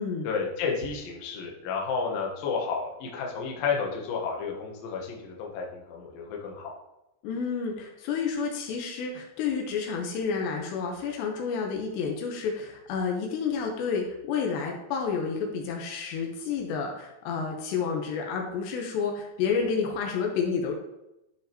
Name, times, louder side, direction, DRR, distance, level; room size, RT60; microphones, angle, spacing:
voice 1, 0.2-6.7, left 5 dB, 65° left, -1 dB, 2.8 m, -31 dB
voice 2, 7.2-20.7, left 5 dB, 85° left, 1 dB, 3.1 m, -30 dB
12.0 x 5.2 x 2.9 m, 0.91 s
omnidirectional pair, 5.0 m